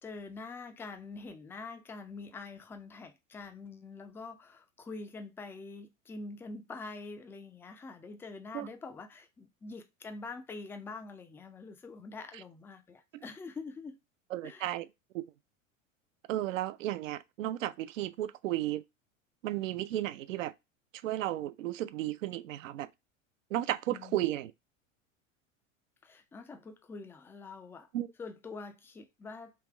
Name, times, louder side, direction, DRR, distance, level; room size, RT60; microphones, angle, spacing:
voice 1, 0.0-14.0 14.4-14.8 23.9-24.4 26.0-27.9 28.2-29.5, left 3 dB, 5° left, 0.3 m, -45 dB
voice 2, 14.3-14.9 15.1-15.2 16.3-18.8 19.4-20.5 21.0-22.9 23.5-24.5 27.9-28.1, right 14 dB, 75° right, 0.5 m, -33 dB
3.4 x 3.1 x 3.3 m
hypercardioid pair, 85°, 39 cm